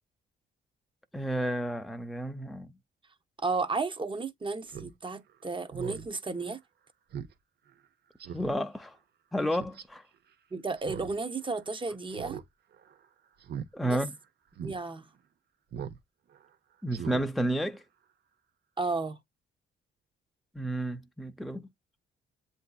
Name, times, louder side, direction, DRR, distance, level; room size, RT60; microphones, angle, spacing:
voice 1, 1.1-2.7 8.3-9.0 9.3-10.0 13.7-14.2 16.8-17.8 20.5-21.7, right 1 dB, ahead, 0.5 m, -31 dB
voice 2, 3.4-6.6 10.5-12.4 13.8-14.0 14.6-15.1 18.8-19.2, right 3 dB, 25° right, 0.8 m, -33 dB
Speech synthesizer, 4.7-4.9 5.3-5.4 5.7-6.1 6.5-6.6 7.1-7.3 7.7-7.8 8.2-8.5 9.5-9.8 10.8-11.1 11.4-11.5 12.1-12.4 12.7-13.0 13.4-13.7 14.1-14.2 14.6-14.8 15.7-16.0 16.3-16.5 16.9-17.2 17.6-17.7, right 8 dB, 55° right, 0.7 m, -39 dB
7.7 x 2.7 x 2.3 m
cardioid pair, 90°, 20 cm